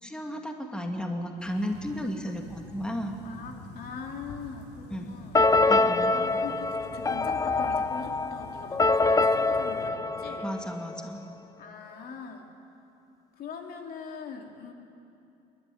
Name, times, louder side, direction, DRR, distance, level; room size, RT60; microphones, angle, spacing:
voice 1, 0.0-3.2 4.9-5.2 5.7-6.1 10.4-11.2, equal, 5° left, 2 dB, 2.1 m, -34 dB
sound 1, 1.4-9.9, left 2 dB, 80° left, 2.5 m, -47 dB
voice 2, 3.2-5.4 6.1-10.5 11.6-12.5 13.4-14.7, left 5 dB, 60° left, 3 dB, 2.6 m, -42 dB
sound 2, 5.3-11.1, left 3 dB, 20° left, 0.6 m, -25 dB
27.0 x 12.5 x 9.9 m, 2.7 s
cardioid pair, 110°, 17 cm